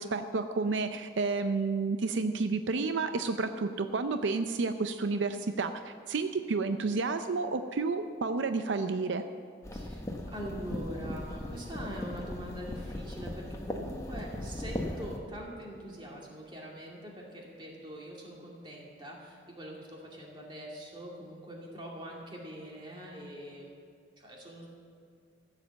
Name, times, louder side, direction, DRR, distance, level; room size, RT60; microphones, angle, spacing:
voice 1, 0.0-9.2, right 4 dB, 80° right, 8 dB, 0.5 m, -31 dB
sound 1, 9.6-15.2, left 1 dB, 15° left, 1.1 m, -38 dB
voice 2, 9.7-23.8 24.2-24.7, equal, 25° right, -2 dB, 2.4 m, -43 dB
15.0 x 7.6 x 7.5 m, 2.4 s
head